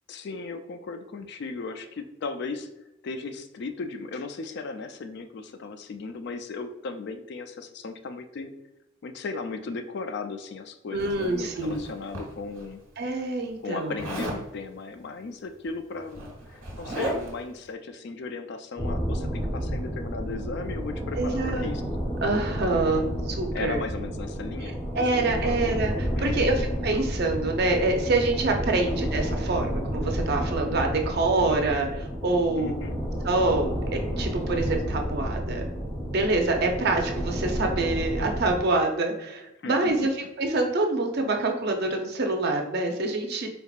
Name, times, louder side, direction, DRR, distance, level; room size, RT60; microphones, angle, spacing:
voice 1, 0.1-2.7 3.0-8.5 9.0-12.8 13.6-21.8 22.7-22.9 23.5-25.6 26.1-26.5 28.7-28.9 32.6-33.0 39.6-39.9, left 4 dB, 55° left, 8 dB, 0.3 m, -36 dB
voice 2, 10.9-11.8 13.0-14.0 21.2-21.7 22.2-23.0 23.4-23.8 24.9-32.8 33.2-35.7 36.1-40.1 40.4-43.5, right 2 dB, 50° right, 3 dB, 0.6 m, -26 dB
Zipper (clothing), 11.0-12.6 14.0-14.4 15.6-15.7 16.0-17.5, right 1 dB, 90° right, 1.3 m, -35 dB
sound 1, 18.8-38.6, equal, 20° left, 0.7 m, -31 dB
4.2 x 3.4 x 2.4 m, 0.92 s
head